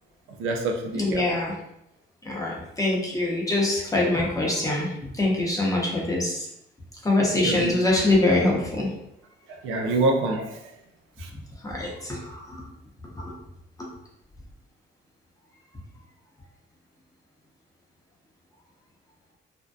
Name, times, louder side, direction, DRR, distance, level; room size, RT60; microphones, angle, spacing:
voice 1, 0.4-1.2 7.4-7.7 9.6-10.6 11.2-11.3, right 2 dB, 85° right, 3 dB, 0.4 m, -26 dB
voice 2, 0.9-1.5 2.2-6.5 7.0-8.9 11.6-12.6 13.1-13.3, left 2 dB, 15° left, -3 dB, 0.7 m, -24 dB
2.6 x 2.2 x 2.2 m, 0.79 s
cardioid pair, 90°, 20 cm